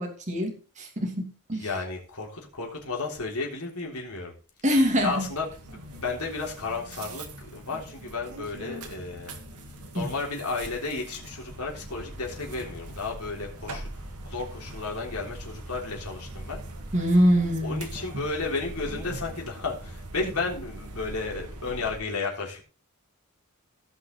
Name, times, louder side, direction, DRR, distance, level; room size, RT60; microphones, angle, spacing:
voice 1, 0.0-1.7 4.6-5.2 9.9-10.1 16.9-17.9, equal, 35° right, 1 dB, 2.8 m, -24 dB
voice 2, 1.5-4.3 5.0-9.4 9.9-13.9 14.2-16.6 17.6-22.6, left 3 dB, 80° left, 0 dB, 3.7 m, -33 dB
sound 1, 4.7-22.0, right 1 dB, 85° right, 2.1 m, -41 dB
18.0 x 6.0 x 4.0 m, 0.35 s
head